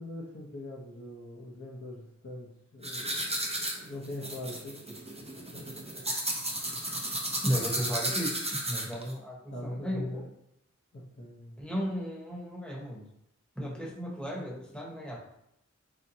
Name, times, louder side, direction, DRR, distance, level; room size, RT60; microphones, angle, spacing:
voice 1, 0.0-4.8 5.5-5.8 9.5-10.2 10.9-11.6, left 1 dB, 45° left, -6 dB, 0.8 m, -42 dB
sound 1, 2.8-9.1, right 1 dB, 20° right, 0.6 m, -33 dB
voice 2, 7.4-10.0 11.6-13.0 13.5-15.2, equal, 5° left, -4 dB, 1.1 m, -34 dB
4.1 x 2.1 x 2.7 m, 0.78 s
wide cardioid pair, 45°, 29 cm